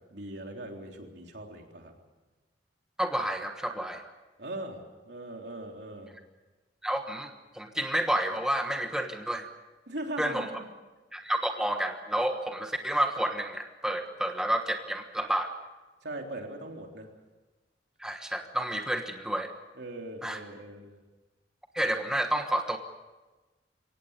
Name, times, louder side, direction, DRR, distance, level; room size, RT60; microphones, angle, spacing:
voice 1, 0.1-1.9 4.4-6.2 9.9-10.6 16.0-17.1 19.8-21.0, right 1 dB, 65° right, 2 dB, 3.6 m, -40 dB
voice 2, 3.0-4.1 6.8-9.5 10.2-10.5 11.1-15.5 18.0-19.5 20.2-20.4 21.7-22.8, right 1 dB, 5° right, 4 dB, 1.3 m, -30 dB
24.0 x 18.0 x 8.2 m, 1.2 s
head